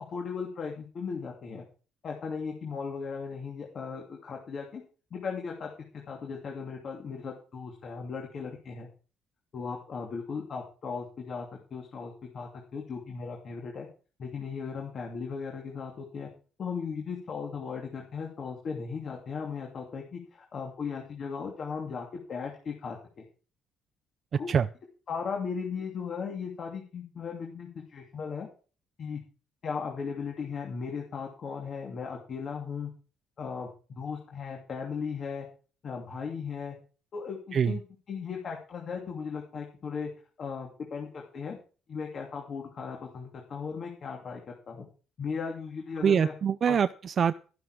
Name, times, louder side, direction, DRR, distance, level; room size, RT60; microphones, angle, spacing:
voice 1, 0.0-1.6 2.0-4.8 5.1-8.9 9.5-13.9 14.2-16.3 16.6-23.3 24.3-24.5 25.1-28.5 29.0-29.2 29.6-32.9 33.4-33.7 34.0-35.5 35.8-36.8 37.1-37.8 38.1-40.1 40.4-41.6 41.9-44.4 44.7-44.9 45.2-46.3 46.7-46.8, left 5 dB, 40° left, 0 dB, 2.6 m, -37 dB
voice 2, 46.0-47.4, right 7 dB, 35° right, 12 dB, 0.5 m, -24 dB
13.0 x 11.5 x 4.8 m, 0.37 s
cardioid pair, 155°, 0 cm